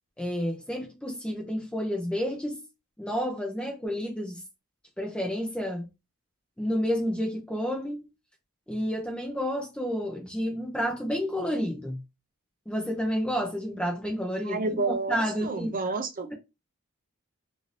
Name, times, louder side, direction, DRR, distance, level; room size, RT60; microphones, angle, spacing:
voice 1, 0.2-2.6 3.0-4.4 5.0-5.9 6.6-8.1 8.7-12.0 12.7-15.7, equal, 5° left, 0.5 m, -30 dB
voice 2, 14.4-16.3, right 3 dB, 40° right, 0.5 m, -30 dB
2.7 x 2.5 x 3.1 m
head